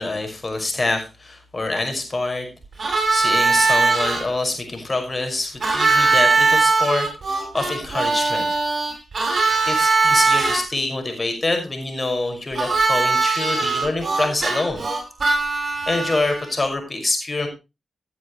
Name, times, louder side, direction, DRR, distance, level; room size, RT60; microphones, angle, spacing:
voice 1, 0.0-2.5 2.8-8.5 9.7-14.8 15.2-17.5, left 2 dB, 40° left, 4 dB, 5.9 m, -26 dB
Harmonica, 2.8-4.2 5.6-10.6 12.5-16.5, right 4 dB, 55° right, 6.2 m, -20 dB
16.5 x 9.5 x 3.2 m, 0.27 s
supercardioid pair, 45°, 0 cm